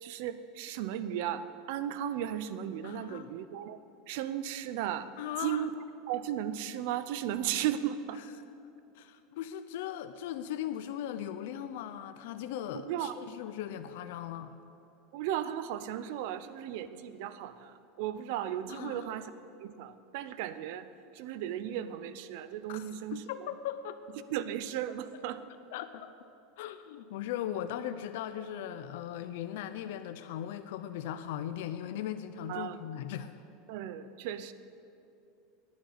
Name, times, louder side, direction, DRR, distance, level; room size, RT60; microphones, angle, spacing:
voice 1, 0.0-3.8 4.1-5.1 5.4-5.7 6.1-8.2 12.7-13.2 15.1-19.3 19.6-20.9 21.1-23.5 24.3-25.4 32.5-32.8 33.7-34.5, right 10 dB, 55° right, 13 dB, 0.7 m, -35 dB
voice 2, 2.8-3.3 5.2-5.7 9.0-14.5 18.7-19.1 22.7-22.9 23.1-24.0 25.7-26.1 26.6-33.3, left 10 dB, 65° left, 10 dB, 0.6 m, -38 dB
10.5 x 9.5 x 9.6 m, 2.7 s
supercardioid pair, 170°, 0 cm